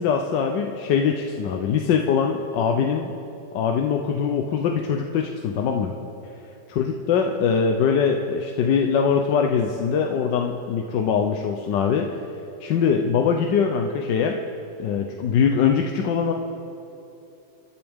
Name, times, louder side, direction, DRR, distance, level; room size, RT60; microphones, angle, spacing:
voice 1, 0.0-3.1 3.5-5.9 6.8-12.1 12.6-14.4 14.8-16.3, left 6 dB, 85° left, 3 dB, 1.4 m, -22 dB
30.0 x 12.0 x 3.6 m, 2.9 s
omnidirectional pair, 1.9 m